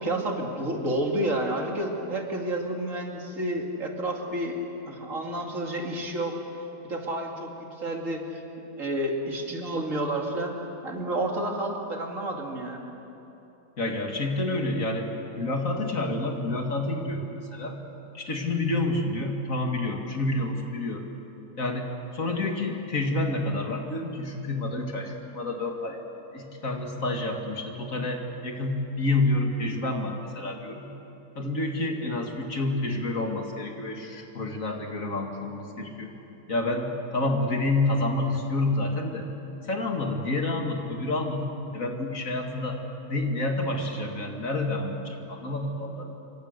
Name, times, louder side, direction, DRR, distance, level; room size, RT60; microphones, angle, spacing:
voice 1, 0.0-4.6 4.9-6.4 6.8-7.5 7.8-8.2 8.8-10.6 10.8-12.8, right 1 dB, 55° right, 1 dB, 2.8 m, -30 dB
voice 2, 13.8-17.8 18.1-21.0 21.6-26.0 26.3-30.9 31.4-36.1 36.5-39.3 39.6-42.8 43.1-46.1, left 2 dB, 55° left, 2 dB, 2.5 m, -29 dB
27.0 x 24.0 x 6.7 m, 3.0 s
omnidirectional pair, 1.7 m